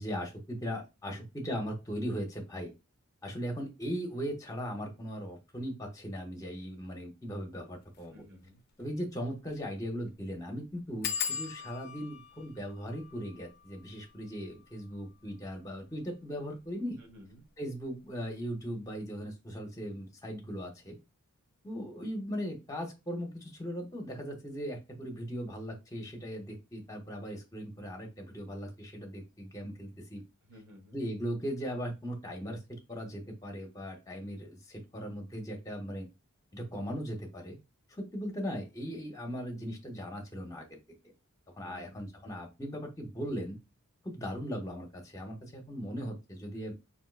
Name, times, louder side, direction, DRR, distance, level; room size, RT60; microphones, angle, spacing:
voice 1, 0.0-2.7 3.2-8.2 8.8-17.0 17.6-21.0 21.6-30.2 30.9-32.6 32.9-36.1 36.5-37.6 37.9-40.8 41.5-43.6 44.0-46.7, equal, 15° left, 2 dB, 0.7 m, -38 dB
sound 1, 7.9-8.1 8.5-8.6 8.8-8.9 9.4-9.7 10.0-10.1 11.0-16.3 17.0-17.5 17.8-18.2 18.4-18.5, left 7 dB, 45° left, 0.4 m, -41 dB
voice 2, 8.1-8.6 17.0-17.4 30.4-31.0 41.6-42.1, left 1 dB, 50° right, 3 dB, 1.0 m, -54 dB
3.5 x 2.6 x 2.4 m, 0.26 s
head